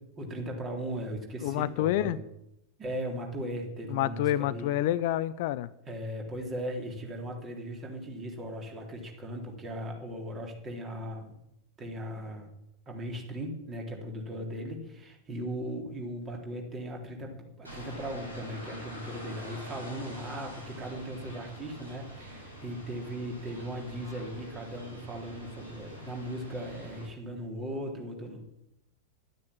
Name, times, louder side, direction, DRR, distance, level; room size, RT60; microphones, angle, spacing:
voice 1, 0.2-2.2 2.8-4.7 5.9-11.4 11.8-12.5 12.9-28.5, equal, 25° right, 1 dB, 3.7 m, -38 dB
voice 2, 1.4-2.2 3.9-5.7, left 13 dB, 50° left, 17 dB, 0.5 m, -28 dB
philadelphia parkwaymuseum, 17.6-27.1, right 1 dB, 85° right, 6.3 m, -45 dB
12.0 x 9.6 x 8.8 m, 0.82 s
figure-of-eight pair, 90°, 0 cm